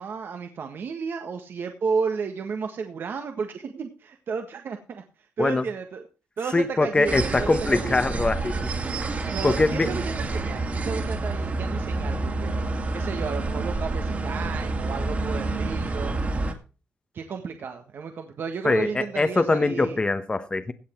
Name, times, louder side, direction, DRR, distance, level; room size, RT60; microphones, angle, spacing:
voice 1, 0.0-5.0 5.4-6.0 6.4-8.2 9.3-12.5 12.9-16.1 17.1-20.0, right 5 dB, 60° right, 1.6 m, -32 dB
voice 2, 6.5-8.5 9.4-9.9 18.6-20.7, left 3 dB, 20° left, 1.1 m, -23 dB
sound 1, 7.1-16.5, right 3 dB, 40° right, 2.5 m, -28 dB
16.5 x 7.8 x 4.5 m
cardioid pair, 115°, 4 cm